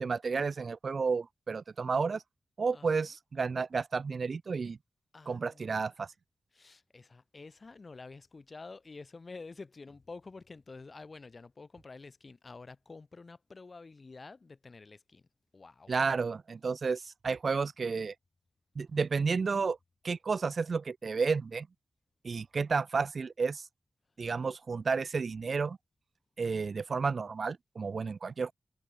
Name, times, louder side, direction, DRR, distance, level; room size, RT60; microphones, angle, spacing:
voice 1, 0.0-2.2 2.6-4.8 5.3-6.1 15.9-18.1 18.8-19.8 20.0-21.7 22.2-23.6 24.2-25.8 26.4-28.5, right 5 dB, 55° right, 0.4 m, -31 dB
voice 2, 2.7-3.0 5.1-6.1 6.5-15.3 15.5-15.9, left 3 dB, 40° left, 5.2 m, -49 dB
wide cardioid pair, 125°, 0 cm